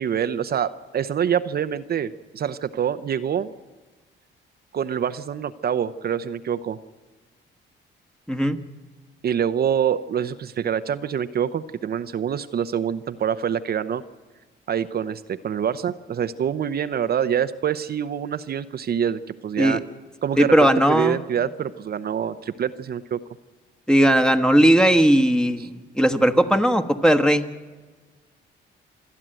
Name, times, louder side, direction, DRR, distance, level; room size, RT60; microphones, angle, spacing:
voice 1, 0.0-3.5 4.7-6.8 9.2-14.0 14.7-19.8 20.2-23.2 25.6-25.7, right 8 dB, 50° right, 10 dB, 0.7 m, -26 dB
voice 2, 8.3-8.6 19.6-19.8 20.4-21.2 23.9-27.5, right 1 dB, 5° left, 8 dB, 1.3 m, -18 dB
27.0 x 11.0 x 9.0 m, 1.3 s
cardioid pair, 90°, 20 cm